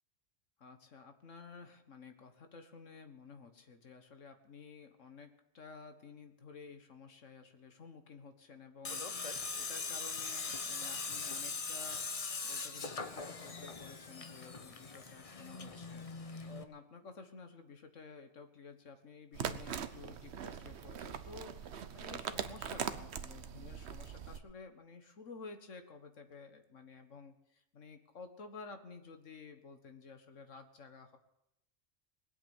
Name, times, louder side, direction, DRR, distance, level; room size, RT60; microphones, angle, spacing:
voice 1, 0.6-16.1 16.5-31.2, left 4 dB, 80° left, 7 dB, 1.9 m, -53 dB
Tools, 8.8-16.6, left 4 dB, 30° left, 0.9 m, -41 dB
sound 1, 19.3-24.4, right 7 dB, 60° right, 1.1 m, -41 dB
20.0 x 8.3 x 8.3 m, 0.86 s
omnidirectional pair, 1.3 m